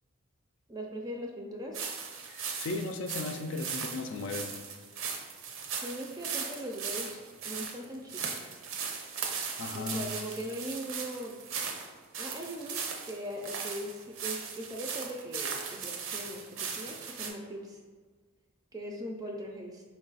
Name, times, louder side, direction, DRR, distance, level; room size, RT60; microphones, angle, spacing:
voice 1, 0.7-1.8 5.8-7.2 7.4-8.4 9.7-11.3 12.2-17.8 18.7-19.8, equal, 20° right, 1 dB, 0.4 m, -40 dB
sound 1, 1.7-17.3, right 6 dB, 80° right, 0.6 m, -38 dB
voice 2, 2.3-4.5 9.6-10.1, left 3 dB, 65° left, 6 dB, 0.4 m, -36 dB
4.6 x 2.4 x 3.9 m, 1.5 s
head